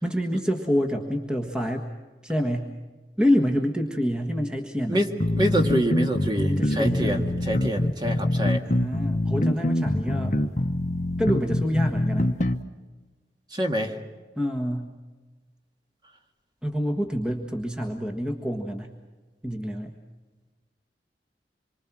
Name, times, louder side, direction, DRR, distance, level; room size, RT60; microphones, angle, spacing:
voice 1, 0.0-1.9 2.2-2.7 3.2-5.0 6.5-7.3 8.6-10.4 11.2-12.4 14.4-14.9 16.6-18.9 19.4-19.9, equal, 5° right, 2 dB, 1.5 m, -27 dB
sound 1, 5.2-12.6, left 1 dB, 45° left, 1.0 m, -24 dB
voice 2, 5.4-8.6 13.5-13.9, equal, 25° right, 4 dB, 1.9 m, -26 dB
26.5 x 24.0 x 6.1 m, 1.3 s
head